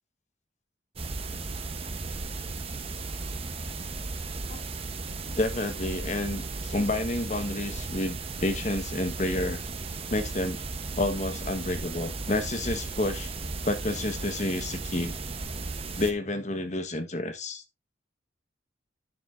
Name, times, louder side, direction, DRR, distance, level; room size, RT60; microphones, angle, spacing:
sound 1, 1.0-16.1, right 3 dB, 30° right, 0.9 m, -35 dB
voice 1, 5.4-9.6 10.1-10.6 10.9-13.3 13.6-15.1 15.9-17.6, left 2 dB, 40° left, 1.2 m, -30 dB
9.8 x 7.1 x 2.6 m
head